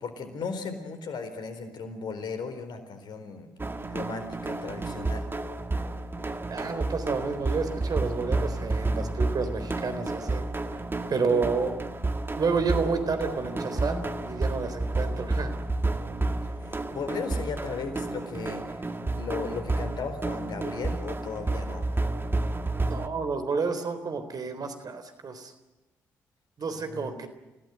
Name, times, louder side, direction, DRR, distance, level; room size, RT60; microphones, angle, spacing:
voice 1, 0.0-3.5 3.9-5.3 16.7-18.8 19.1-21.8 26.7-27.1, left 5 dB, 60° left, 8 dB, 4.3 m, -36 dB
sound 1, 3.6-23.1, right 2 dB, 25° right, 2.0 m, -31 dB
voice 2, 6.5-10.4 11.1-11.8 12.3-15.5 22.8-25.5 26.6-27.3, right 4 dB, 50° right, 9 dB, 3.8 m, -30 dB
28.5 x 17.5 x 8.0 m, 1.1 s
hypercardioid pair, 40°, 8 cm